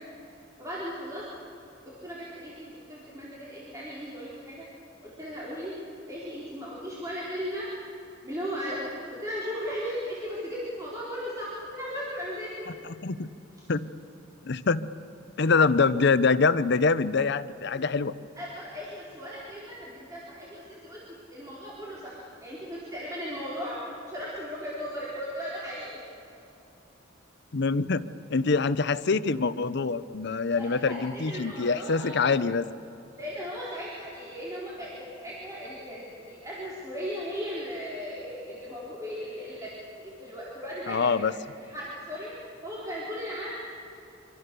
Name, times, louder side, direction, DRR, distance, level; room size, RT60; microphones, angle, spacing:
voice 1, 0.6-1.2 2.0-4.7 5.0-5.7 6.1-7.7 8.2-12.5 18.4-21.0 21.3-26.2 30.6-32.3 33.1-41.1 41.7-42.3 42.6-43.6, equal, 20° right, -7 dB, 4.1 m, -37 dB
voice 2, 13.0-13.3 13.7-13.9 14.4-14.9 15.4-18.1 27.5-32.7 40.9-41.3, left 4 dB, 60° left, 14 dB, 0.7 m, -25 dB
26.0 x 25.0 x 6.8 m, 2.8 s
head